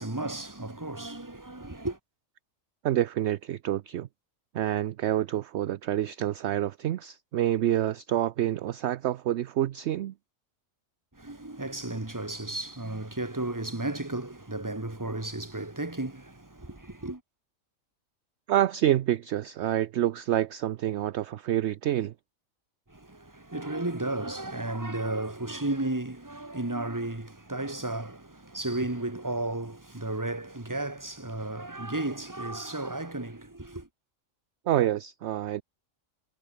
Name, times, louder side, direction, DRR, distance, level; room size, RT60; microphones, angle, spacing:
voice 1, 0.0-2.0 11.1-17.2 22.9-33.9, right 2 dB, 15° right, 1.9 m, -34 dB
voice 2, 2.8-4.1 4.5-10.1 18.5-22.1 34.7-35.6, right 12 dB, 65° right, 0.8 m, -27 dB
omnidirectional pair, 1.4 m